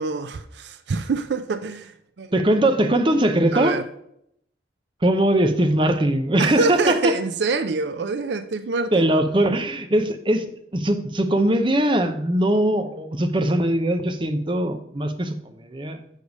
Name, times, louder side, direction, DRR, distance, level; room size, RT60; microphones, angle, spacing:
voice 1, 0.0-2.3 3.5-3.8 6.4-9.1, right 4 dB, 70° right, 0.5 m, -26 dB
voice 2, 2.3-3.8 5.0-7.2 8.9-16.0, right 1 dB, 25° right, 0.7 m, -21 dB
6.5 x 4.9 x 5.3 m
head